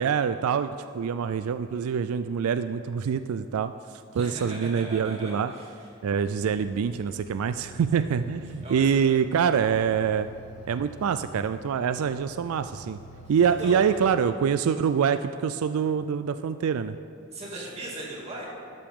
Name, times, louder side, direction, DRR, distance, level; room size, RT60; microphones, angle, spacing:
voice 1, 0.0-3.7 4.1-5.5 6.0-10.3 10.7-13.0 13.3-17.0, right 7 dB, 85° right, 11 dB, 0.3 m, -25 dB
voice 2, 4.1-5.7 8.6-9.0 13.6-13.8 17.3-18.4, right 1 dB, 30° right, -4 dB, 2.5 m, -38 dB
sound 1, 6.2-14.2, equal, 80° left, 0.9 m, -47 dB
12.5 x 12.0 x 3.7 m, 2.5 s
head